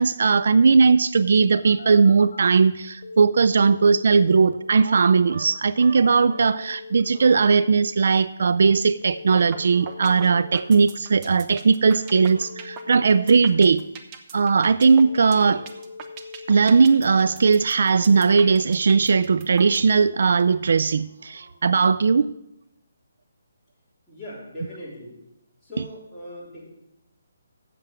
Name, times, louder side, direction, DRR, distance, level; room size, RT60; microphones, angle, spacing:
voice 1, 0.0-13.8 14.3-15.6 16.5-22.3, right 5 dB, 65° right, 16 dB, 0.4 m, -18 dB
Telephone, 1.5-2.5 3.0-4.5 6.0-7.5 9.0-10.5 12.0-13.5 15.0-16.5, left 4 dB, 75° left, 1.3 m, -41 dB
sound 1, 4.5-6.6 6.9-7.6 9.2-10.0 11.7-12.5 12.8-13.1 15.2-15.8 17.4-18.4 20.8-21.6, right 3 dB, 85° right, 1.5 m, -44 dB
sound 2, 9.4-9.6 9.9-19.9, right 7 dB, 25° right, 0.8 m, -39 dB
voice 2, 24.1-25.2 25.6-26.7, left 1 dB, 5° left, -10 dB, 3.6 m, -39 dB
7.6 x 7.3 x 7.9 m, 0.84 s
hypercardioid pair, 165°, 0 cm